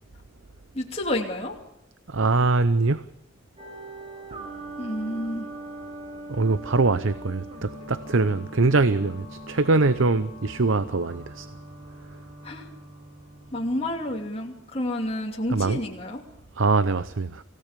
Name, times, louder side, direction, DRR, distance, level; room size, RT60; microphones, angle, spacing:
voice 1, 0.7-1.5 4.8-5.5 12.4-12.7 13.5-16.2, left 1 dB, 30° left, 0 dB, 2.9 m, -29 dB
voice 2, 2.1-3.0 6.3-11.5 15.5-15.8 16.6-17.4, right 3 dB, 75° right, 14 dB, 0.8 m, -23 dB
sound 1, 3.6-14.6, right 2 dB, 30° right, 5.1 m, -42 dB
25.0 x 17.0 x 6.8 m, 0.80 s
head